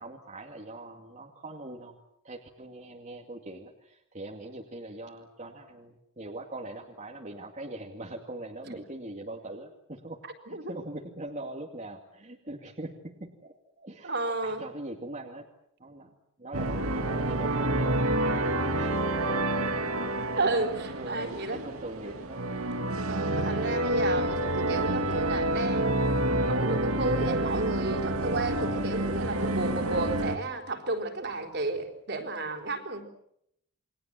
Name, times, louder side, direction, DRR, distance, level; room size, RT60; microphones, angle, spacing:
voice 1, 0.0-2.0 2.2-15.5 15.8-16.1 16.4-18.0 18.6-19.2 20.3-20.6 20.9-22.5, right 2 dB, 35° right, 0 dB, 2.4 m, -42 dB
voice 2, 10.2-10.7 14.0-14.6 20.4-21.7 22.0-22.2 23.1-26.1 26.4-33.0, right 2 dB, 50° right, 5 dB, 4.1 m, -32 dB
sound 1, 16.5-30.4, right 1 dB, 80° right, 2.2 m, -28 dB
29.0 x 23.0 x 7.6 m, 0.75 s
head